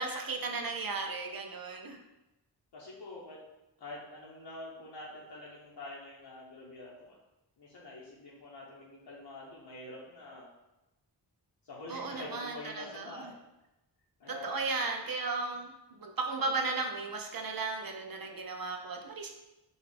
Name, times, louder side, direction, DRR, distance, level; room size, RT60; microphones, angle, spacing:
voice 1, 0.0-2.0 11.9-13.1 14.3-15.7 16.0-19.3, right 3 dB, 55° right, 2 dB, 0.5 m, -35 dB
voice 2, 2.7-3.4 3.8-7.2 7.6-10.5 11.6-13.4 14.2-14.7, left 2 dB, 70° left, -5 dB, 0.8 m, -46 dB
5.4 x 2.3 x 3.2 m, 0.97 s
wide cardioid pair, 85°, 43 cm